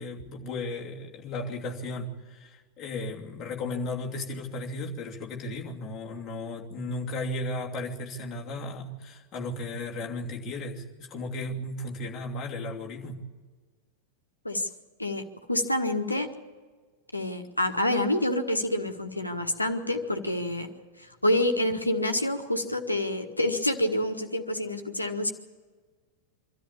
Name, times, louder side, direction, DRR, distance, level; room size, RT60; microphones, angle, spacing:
voice 1, 0.0-13.2, left 2 dB, 30° left, -1 dB, 2.9 m, -35 dB
voice 2, 15.0-16.3 17.1-20.7 21.0-25.3, left 1 dB, 85° left, 6 dB, 1.5 m, -27 dB
24.5 x 13.5 x 8.6 m, 1.4 s
figure-of-eight pair, 90°, 0 cm